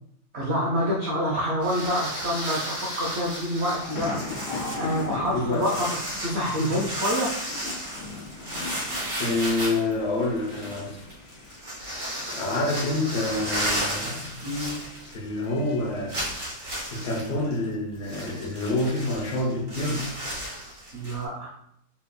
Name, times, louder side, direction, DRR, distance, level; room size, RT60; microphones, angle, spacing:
voice 1, 0.3-7.3 14.4-14.8 20.9-21.5, equal, 70° right, -4 dB, 0.6 m, -27 dB
sound 1, 1.6-15.4 15.7-15.8 16.1-21.2, equal, 35° right, 1.3 m, -34 dB
sound 2, 3.8-16.3, left 4 dB, 85° left, 1.3 m, -41 dB
sound 3, 3.8-5.3, left 4 dB, 40° left, 0.3 m, -38 dB
voice 2, 5.3-5.7 9.2-11.0 12.3-14.5 15.1-16.2 16.9-20.1, left 2 dB, 65° left, -2 dB, 1.4 m, -27 dB
4.4 x 3.0 x 2.3 m, 0.76 s
omnidirectional pair, 2.0 m